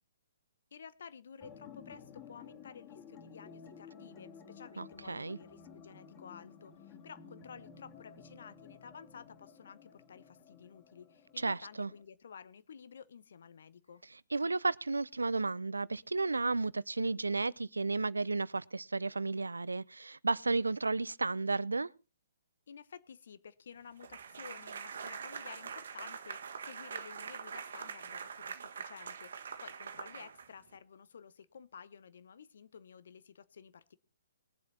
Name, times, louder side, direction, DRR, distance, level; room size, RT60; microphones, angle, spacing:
voice 1, 0.7-14.0 22.7-34.0, left 7 dB, 60° left, 1.1 m, -53 dB
sound 1, 1.4-12.0, left 6 dB, 25° left, 3.3 m, -54 dB
voice 2, 4.8-5.4 11.4-11.9 14.3-21.9, right 3 dB, 80° right, 0.5 m, -33 dB
sound 2, 24.0-30.8, right 6 dB, 60° right, 1.6 m, -44 dB
21.5 x 7.6 x 4.2 m
figure-of-eight pair, 130°, 0 cm